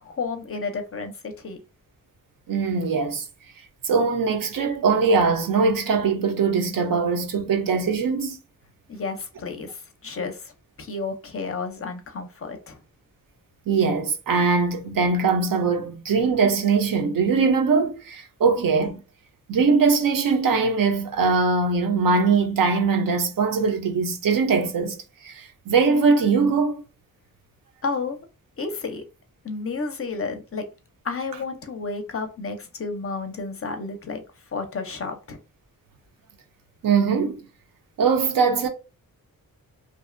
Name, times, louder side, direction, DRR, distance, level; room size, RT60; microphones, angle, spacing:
voice 1, 0.0-1.6 8.9-10.5 10.8-12.8 27.8-28.2 28.6-29.0 29.4-30.6 31.0-34.2 34.5-35.4, left 4 dB, 40° left, 0.5 m, -31 dB
voice 2, 2.5-3.3 3.8-8.4 13.7-19.0 19.5-25.0 25.2-26.8 36.8-37.4 38.0-38.7, right 4 dB, 65° right, 0.6 m, -21 dB
2.6 x 2.1 x 2.4 m
wide cardioid pair, 95°, 36 cm